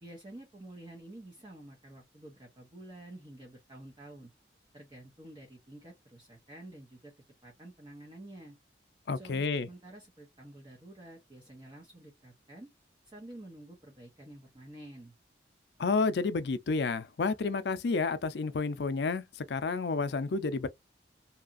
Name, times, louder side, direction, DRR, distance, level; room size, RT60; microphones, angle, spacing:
voice 1, 0.0-4.3 4.7-8.6 9.1-12.7 13.0-15.1, right 1 dB, 25° right, 0.8 m, -50 dB
voice 2, 9.1-9.7 15.8-20.7, left 4 dB, 70° left, 0.4 m, -30 dB
2.8 x 2.4 x 2.4 m
head